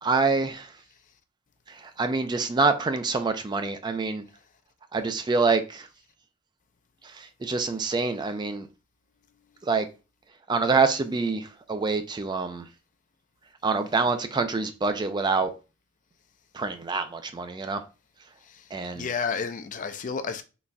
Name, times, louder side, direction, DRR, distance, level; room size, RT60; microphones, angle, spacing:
voice 1, 0.0-0.7 1.8-4.2 4.9-5.9 7.1-8.7 9.6-9.9 10.5-12.6 13.6-15.5 16.5-17.8 18.7-19.1, right 4 dB, 20° right, 0.4 m, -26 dB
voice 2, 18.9-20.4, left 5 dB, 40° left, 0.4 m, -31 dB
4.0 x 3.6 x 2.2 m
head